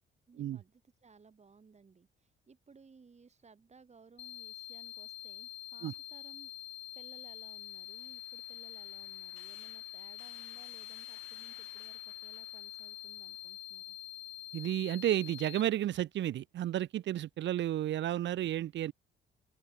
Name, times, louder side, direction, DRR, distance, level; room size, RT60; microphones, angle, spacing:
voice 1, 0.3-6.5 6.9-14.0, right 5 dB, 35° right, 6.0 m, -60 dB
sound 1, 4.2-15.6, left 13 dB, 65° left, 0.5 m, -46 dB
sound 2, 7.1-13.6, left 15 dB, 90° left, 6.0 m, -62 dB
voice 2, 14.5-18.9, right 12 dB, 65° right, 0.8 m, -32 dB
open air
cardioid pair, 90°, 20 cm